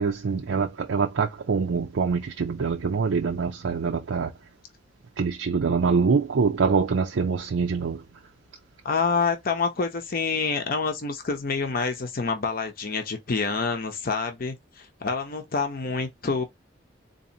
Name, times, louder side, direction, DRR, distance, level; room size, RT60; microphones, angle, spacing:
voice 1, 0.0-4.3 5.2-8.0, right 5 dB, 80° right, 0.5 m, -24 dB
voice 2, 8.8-16.4, left 4 dB, 50° left, 0.8 m, -27 dB
4.0 x 2.7 x 2.7 m
head